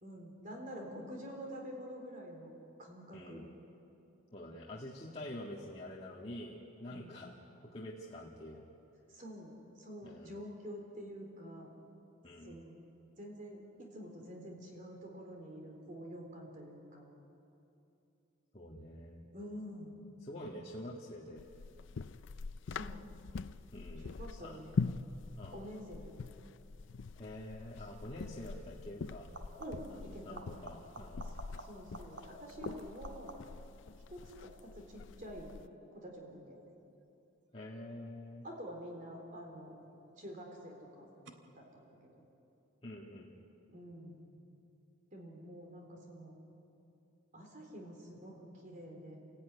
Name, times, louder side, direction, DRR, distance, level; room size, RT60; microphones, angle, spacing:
voice 1, 0.0-2.5 2.8-3.5 6.9-7.1 9.1-11.7 12.5-12.8 13.2-17.1 19.3-20.0 22.7-23.0 24.0-24.9 25.5-26.1 29.6-30.5 31.2-31.3 31.6-33.3 34.1-35.5 35.9-36.6 38.4-39.7 40.2-41.1 41.5-42.0 43.7-44.3 45.1-46.3 47.3-49.2, equal, 40° right, 1 dB, 3.8 m, -47 dB
voice 2, 3.1-3.5 4.3-7.3 7.7-8.6 10.0-10.4 12.2-12.6 18.5-19.2 20.2-21.4 23.7-24.6 25.4-25.6 27.2-29.3 29.9-31.3 37.5-38.5 42.8-43.3, left 1 dB, 30° left, -4 dB, 1.9 m, -47 dB
sound 1, 21.4-35.7, left 4 dB, 65° left, 0.5 m, -43 dB
sound 2, 27.8-28.0 29.2-30.0 30.3-33.7 39.2-39.7 41.3-41.4, right 2 dB, 60° right, 1.9 m, -52 dB
29.0 x 17.0 x 9.7 m, 2.9 s
head